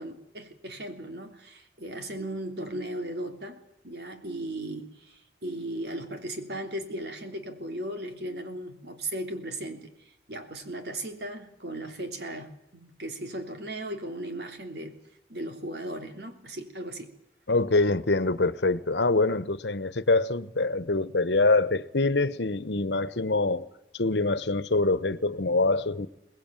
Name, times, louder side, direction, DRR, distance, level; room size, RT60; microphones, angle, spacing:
voice 1, 0.0-15.0 15.3-17.1, right 1 dB, 75° right, 3.5 m, -37 dB
voice 2, 17.5-23.7 24.0-26.1, left 2 dB, 85° left, 1.2 m, -25 dB
23.0 x 20.0 x 9.1 m
head